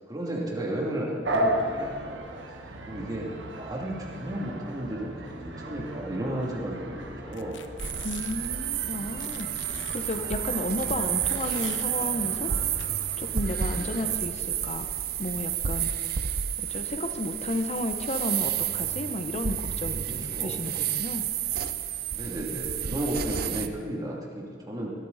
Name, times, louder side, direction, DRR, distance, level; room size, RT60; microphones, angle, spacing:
voice 1, 0.1-2.4 2.9-7.6 13.8-14.1 20.3-20.6 22.1-24.9, right 1 dB, 20° right, -3 dB, 2.8 m, -33 dB
sound 1, 1.2-14.2, right 1 dB, 90° right, 1.4 m, -36 dB
sound 2, 7.3-8.5 9.2-10.2 11.2-11.9 12.8-12.9, left 8 dB, 90° left, 0.8 m, -44 dB
sound 3, 7.8-23.7, right 9 dB, 55° right, 0.6 m, -31 dB
voice 2, 8.0-12.6 13.2-14.9 15.2-15.9 16.6-21.2, left 1 dB, 35° left, 7 dB, 0.8 m, -33 dB
21.5 x 12.5 x 4.1 m, 2.4 s
head